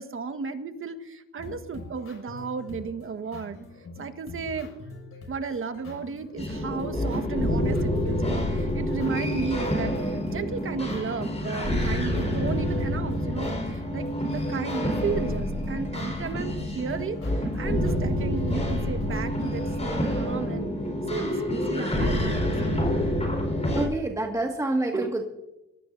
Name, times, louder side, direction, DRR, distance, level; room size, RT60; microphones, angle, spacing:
voice 1, 0.0-3.6 4.0-4.7 5.3-20.7 21.1-22.9, right 5 dB, 45° right, 8 dB, 1.5 m, -34 dB
sound 1, 1.4-19.2, left 2 dB, 50° left, 6.6 m, -44 dB
sound 2, 6.4-23.9, left 1 dB, 20° left, 4.8 m, -27 dB
voice 2, 23.8-25.2, right 2 dB, 10° right, 1 dB, 1.9 m, -27 dB
22.0 x 14.5 x 2.7 m, 0.92 s
cardioid pair, 90°, 30 cm